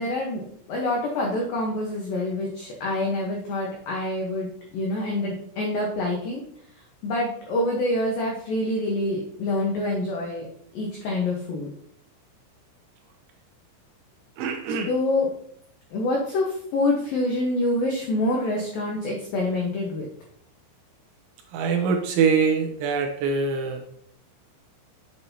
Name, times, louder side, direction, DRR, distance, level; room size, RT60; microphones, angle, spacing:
voice 1, 0.0-6.4 7.0-10.5 10.7-11.7 14.9-15.3 15.9-20.1, left 2 dB, 85° left, -1 dB, 2.0 m, -26 dB
voice 2, 14.4-14.9 21.5-23.8, right 5 dB, 80° right, 4 dB, 2.9 m, -23 dB
8.4 x 7.6 x 2.8 m, 0.68 s
omnidirectional pair, 5.9 m